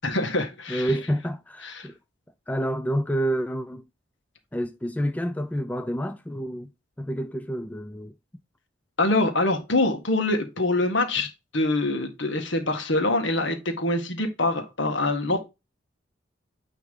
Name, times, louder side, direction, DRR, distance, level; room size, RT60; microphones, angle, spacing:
voice 1, 0.0-0.9 1.6-1.9 9.0-15.4, left 2 dB, 75° left, 1.7 m, -25 dB
voice 2, 0.7-1.9 2.5-3.8 4.5-6.7 7.0-8.1, equal, 10° left, 0.3 m, -28 dB
9.4 x 3.4 x 3.7 m
head